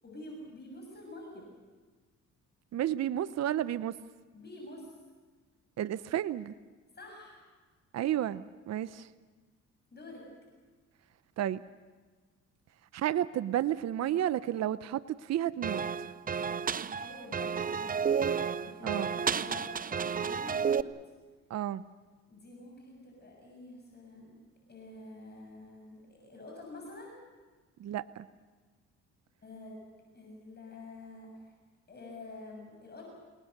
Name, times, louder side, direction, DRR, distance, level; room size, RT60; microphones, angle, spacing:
voice 1, 0.0-1.5 4.3-4.9 6.9-7.5 9.9-10.2 16.9-18.2 18.6-21.1 22.3-24.3 24.7-27.2 29.4-29.8 30.1-31.5 31.9-33.0, left 2 dB, 35° left, 0 dB, 6.8 m, -48 dB
voice 2, 2.7-3.9 5.8-6.5 7.9-9.1 11.4-11.6 12.9-15.8 18.8-19.1 21.5-21.8 27.8-28.3, right 11 dB, 60° right, 14 dB, 0.7 m, -31 dB
sound 1, 15.6-20.8, right 6 dB, 30° right, 0.7 m, -31 dB
28.5 x 19.5 x 6.6 m, 1.4 s
cardioid pair, 90°, 30 cm